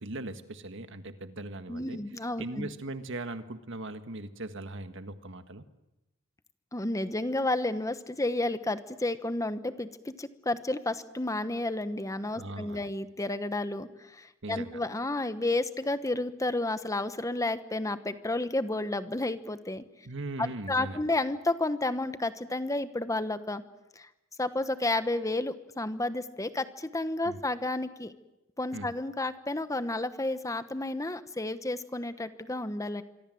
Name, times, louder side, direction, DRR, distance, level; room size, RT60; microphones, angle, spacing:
voice 1, 0.0-2.0 2.4-5.6 12.3-12.9 14.4-14.8 20.0-21.0 27.2-27.4 28.7-28.9, right 2 dB, 65° right, 9 dB, 1.7 m, -39 dB
voice 2, 1.7-2.7 6.7-19.8 20.4-23.6 24.0-24.1 24.4-28.1 28.6-33.0, left 2 dB, 15° left, 11 dB, 1.2 m, -31 dB
26.0 x 24.0 x 7.8 m, 0.97 s
head